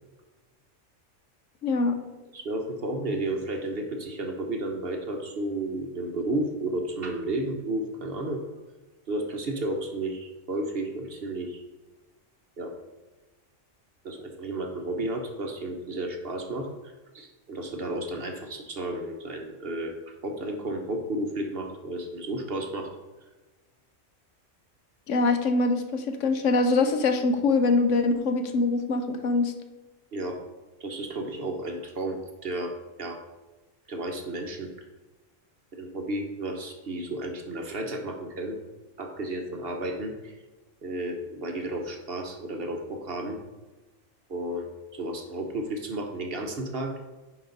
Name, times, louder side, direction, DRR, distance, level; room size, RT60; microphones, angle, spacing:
voice 1, 1.6-2.0 25.1-29.5, left 3 dB, 75° left, 7 dB, 1.1 m, -23 dB
voice 2, 2.3-8.4 9.1-11.6 12.6-12.7 14.0-16.7 17.1-22.9 30.1-30.4 30.8-32.7 33.0-33.2 33.9-34.7 35.7-38.6 39.0-40.3 40.8-43.4 44.3-47.0, right 1 dB, 50° right, 3 dB, 1.2 m, -32 dB
10.0 x 5.1 x 4.0 m, 1.2 s
omnidirectional pair, 1.3 m